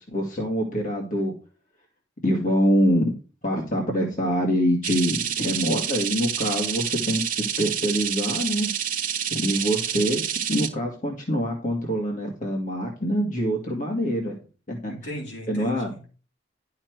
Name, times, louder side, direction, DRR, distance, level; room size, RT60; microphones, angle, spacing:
voice 1, 0.1-1.3 2.2-3.1 3.4-8.7 9.3-10.2 10.5-14.4 14.7-14.9 15.5-15.9, equal, 45° left, 1.9 m, -25 dB
sound 1, 4.8-10.7, right 9 dB, 50° right, 1.4 m, -28 dB
voice 2, 14.9-16.2, equal, 70° left, 3.6 m, -37 dB
11.0 x 5.8 x 4.6 m
head